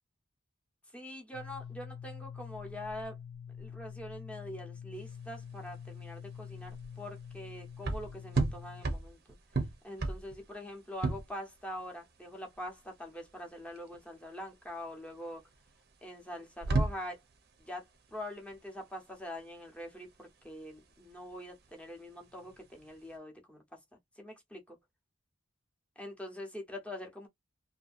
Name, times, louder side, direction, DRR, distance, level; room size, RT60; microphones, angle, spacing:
voice 1, 0.9-3.2 3.6-9.2 9.8-15.4 16.0-17.2 17.6-17.8 18.1-23.6 24.2-24.8 26.0-27.3, left 1 dB, 5° left, 0.8 m, -44 dB
sound 1, 1.3-8.8, left 7 dB, 55° left, 0.7 m, -46 dB
sound 2, 5.0-23.1, right 3 dB, 50° right, 0.6 m, -37 dB
2.7 x 2.6 x 2.4 m
head